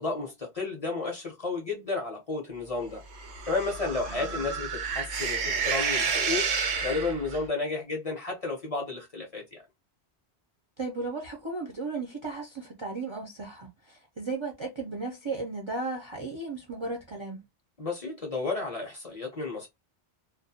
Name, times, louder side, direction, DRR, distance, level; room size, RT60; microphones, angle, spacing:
voice 1, 0.0-3.0 3.5-6.5 6.8-9.6 17.8-19.7, left 3 dB, 40° left, 0.7 m, -32 dB
sound 1, 3.1-7.4, right 5 dB, 75° right, 0.9 m, -30 dB
voice 2, 4.1-4.4 10.8-17.4, right 3 dB, 40° right, 0.4 m, -35 dB
2.3 x 2.1 x 2.7 m
omnidirectional pair, 1.1 m